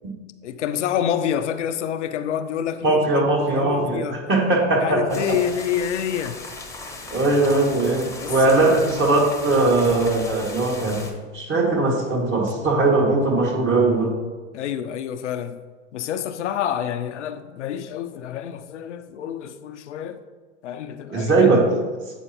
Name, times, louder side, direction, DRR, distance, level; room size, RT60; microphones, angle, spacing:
voice 1, 0.4-4.2 4.8-6.4 8.2-8.8 14.5-15.6 15.9-20.2 20.6-21.5, left 9 dB, 85° left, 0.5 m, -28 dB
voice 2, 2.8-5.0 7.1-11.1 11.3-14.1 21.1-21.7, right 2 dB, 35° right, 1.8 m, -20 dB
sound 1, 5.1-11.1, left 2 dB, 10° left, 0.8 m, -37 dB
8.0 x 4.3 x 2.9 m
hypercardioid pair, 85°, 34 cm